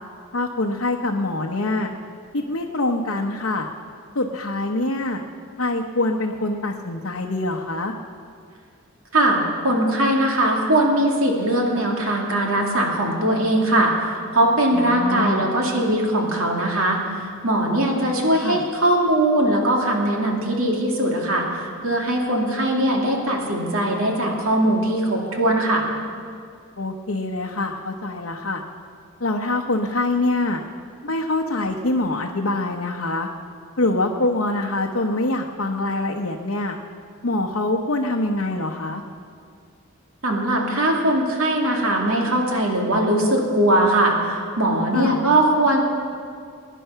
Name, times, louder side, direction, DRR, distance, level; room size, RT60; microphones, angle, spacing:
voice 1, 0.3-1.9 2.3-3.7 4.1-5.2 5.6-7.9 14.7-15.5 18.4-18.6 26.8-28.6 29.2-30.6 31.0-33.3 33.8-36.7 37.2-39.0 44.9-45.2, left 2 dB, 65° left, 0 dB, 0.9 m, -24 dB
voice 2, 9.1-25.8 40.2-45.8, right 1 dB, 75° right, 0 dB, 2.5 m, -20 dB
21.0 x 10.0 x 5.7 m, 2.2 s
head